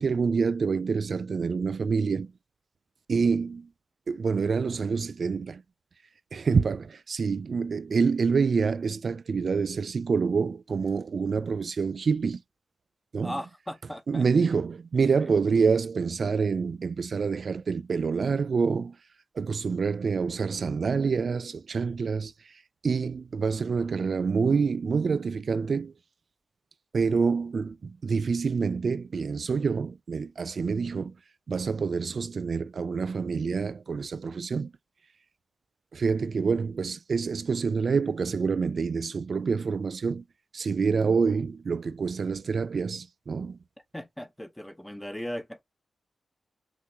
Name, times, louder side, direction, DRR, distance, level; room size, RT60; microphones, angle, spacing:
voice 1, 0.0-2.3 3.1-3.7 4.1-5.6 6.3-12.4 13.1-13.4 14.1-19.0 19.3-25.9 26.9-31.1 31.5-34.7 35.9-40.2 40.5-43.6, right 5 dB, 55° right, 0.3 m, -27 dB
voice 2, 13.2-14.2 15.2-15.3 43.9-45.6, equal, 5° left, 0.7 m, -37 dB
5.9 x 3.0 x 2.6 m
wide cardioid pair, 120°, 0 cm